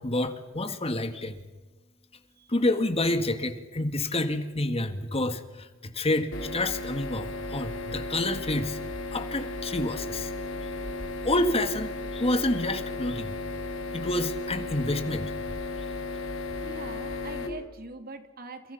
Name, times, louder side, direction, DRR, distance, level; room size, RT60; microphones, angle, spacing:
voice 1, 0.0-1.5 2.5-8.8 9.1-10.3 11.2-13.4 13.9-15.3, left 1 dB, 30° left, 9 dB, 1.9 m, -28 dB
sound 1, 6.3-17.5, left 2 dB, 65° left, 4.1 m, -35 dB
voice 2, 16.6-18.7, right 2 dB, 50° right, 7 dB, 2.9 m, -42 dB
30.0 x 28.5 x 5.7 m, 1.2 s
head